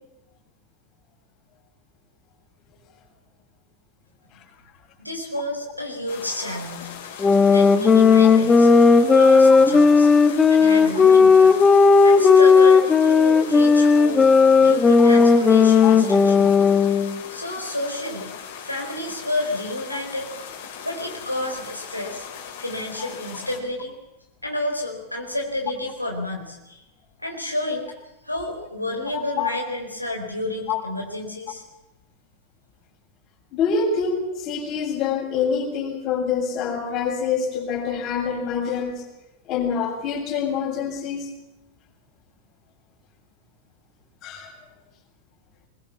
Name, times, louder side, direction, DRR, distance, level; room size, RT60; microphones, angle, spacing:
voice 1, 5.0-6.9 7.5-8.8 9.1-10.1 10.5-11.6 12.0-14.3 14.6-16.5 17.3-18.3 18.6-20.3 20.8-22.3 22.6-24.0 24.4-26.8 27.2-27.9 28.2-31.6, left 1 dB, 85° left, 1 dB, 4.3 m, -30 dB
sound 1, 6.1-23.6, left 7 dB, 55° left, 5.6 m, -39 dB
sound 2, 7.2-17.2, left 5 dB, 15° left, 1.9 m, -14 dB
voice 2, 29.1-29.5 30.7-30.8 33.5-39.0 39.5-41.3 44.2-44.5, left 6 dB, 35° left, 2 dB, 7.2 m, -26 dB
24.0 x 21.5 x 7.2 m, 0.94 s
figure-of-eight pair, 90°, 0 cm